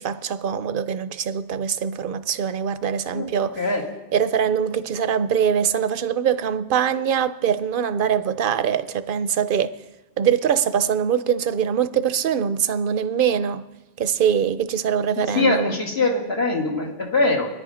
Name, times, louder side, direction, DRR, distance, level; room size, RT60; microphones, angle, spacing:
voice 1, 0.0-3.6 4.1-9.7 10.2-13.6 14.0-15.8, right 8 dB, 60° right, 0.8 m, -23 dB
voice 2, 15.2-17.5, left 2 dB, 70° left, 2.6 m, -22 dB
23.0 x 10.5 x 5.0 m
omnidirectional pair, 1.1 m